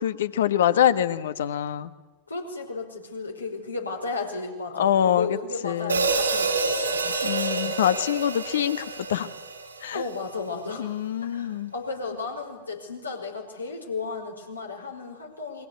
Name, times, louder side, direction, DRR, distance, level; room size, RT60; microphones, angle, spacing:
voice 1, 0.0-1.9 4.7-5.4 5.6-6.1 7.2-9.3 9.8-10.0 10.8-11.7, left 10 dB, 70° left, 13 dB, 1.4 m, -24 dB
voice 2, 2.3-7.1 9.9-10.9 11.3-15.7, left 4 dB, 90° left, 1 dB, 5.2 m, -34 dB
Hi-hat, 5.9-10.1, right 4 dB, 90° right, 5.8 m, -27 dB
29.0 x 23.0 x 8.3 m, 1.1 s
figure-of-eight pair, 90°, 0 cm